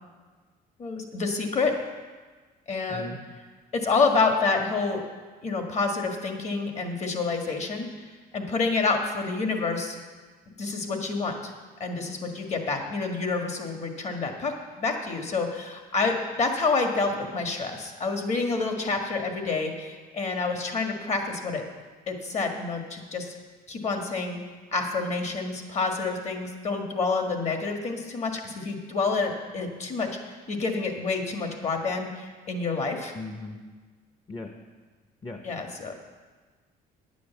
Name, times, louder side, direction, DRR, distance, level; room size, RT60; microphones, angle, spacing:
voice 1, 0.8-1.7 2.7-3.1 3.7-5.0 5.4-7.9 8.3-10.0 10.6-11.5 11.8-14.5 14.8-21.6 22.1-23.3 23.7-24.4 24.7-33.1 35.4-35.9, left 4 dB, 40° left, 3 dB, 1.8 m, -28 dB
voice 2, 33.1-33.6 34.3-34.5 35.2-35.4, left 2 dB, 25° left, 4 dB, 0.9 m, -37 dB
10.0 x 8.4 x 7.1 m, 1.4 s
cardioid pair, 110°, 17 cm